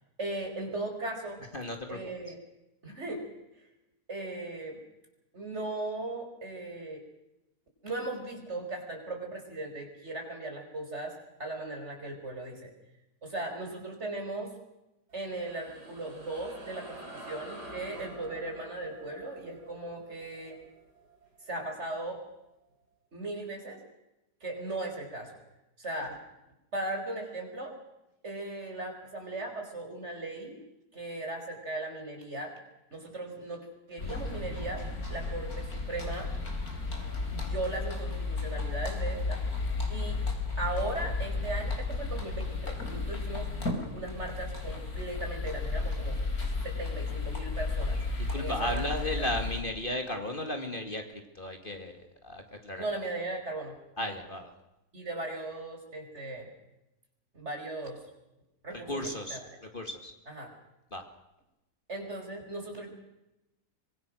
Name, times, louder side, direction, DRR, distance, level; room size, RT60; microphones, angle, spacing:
voice 1, 0.2-1.4 1.9-2.4 2.8-3.3 4.1-4.8 5.3-7.0 7.8-12.7 13.2-14.6 15.1-20.6 21.5-22.2 23.1-23.8 24.4-25.4 25.8-26.2 26.7-27.8 28.2-30.6 30.9-32.6 32.9-36.3 37.3-39.4 39.9-40.2 40.6-43.5 43.9-46.2 46.6-48.0 48.4-49.3 52.8-53.8 54.9-56.5 57.3-58.1 58.6-59.6 60.3-60.6 61.9-62.9, right 2 dB, 45° right, 3 dB, 5.3 m, -38 dB
voice 2, 1.5-2.0 48.2-52.8 54.0-54.5 58.7-60.1 60.9-61.0, left 1 dB, 30° left, 5 dB, 2.5 m, -35 dB
sound 1, 15.1-21.9, right 1 dB, 85° right, 6.3 m, -48 dB
sound 2, 34.0-49.6, left 3 dB, 65° left, 4.5 m, -33 dB
25.0 x 22.5 x 6.3 m, 0.91 s
omnidirectional pair, 1.7 m